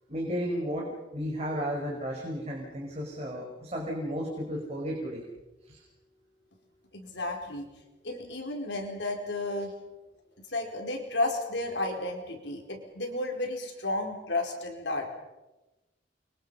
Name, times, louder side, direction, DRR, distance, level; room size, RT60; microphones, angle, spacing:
voice 1, 0.1-0.9 1.1-5.2 5.7-5.8, equal, 35° right, -1 dB, 5.1 m, -33 dB
voice 2, 6.9-7.7 8.0-9.7 10.5-15.1, left 2 dB, 75° left, 2 dB, 4.7 m, -32 dB
29.5 x 23.5 x 5.7 m, 1.1 s
head